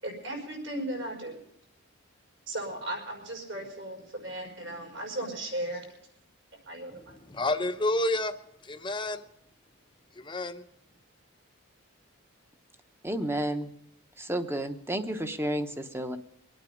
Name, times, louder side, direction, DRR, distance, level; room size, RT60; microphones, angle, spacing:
voice 1, 0.0-1.4 2.5-5.9 6.7-7.2, right 1 dB, 60° right, 5.4 m, -36 dB
voice 2, 7.3-8.3 8.7-9.2 10.2-10.6, left 2 dB, 25° left, 0.8 m, -29 dB
voice 3, 13.0-13.7 14.2-16.2, right 1 dB, 10° right, 1.0 m, -31 dB
24.0 x 9.0 x 5.3 m
head